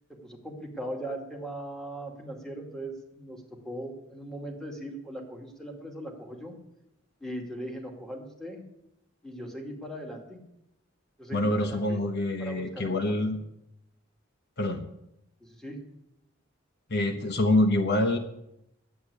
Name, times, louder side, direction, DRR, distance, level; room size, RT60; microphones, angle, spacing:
voice 1, 0.2-6.6 7.2-8.6 9.2-10.4 11.2-12.0 12.4-13.2 15.4-15.8, right 1 dB, 5° left, 0 dB, 2.2 m, -39 dB
voice 2, 11.3-13.4 14.6-14.8 16.9-18.2, left 1 dB, 55° left, 7 dB, 1.0 m, -26 dB
11.0 x 8.8 x 8.3 m, 0.84 s
head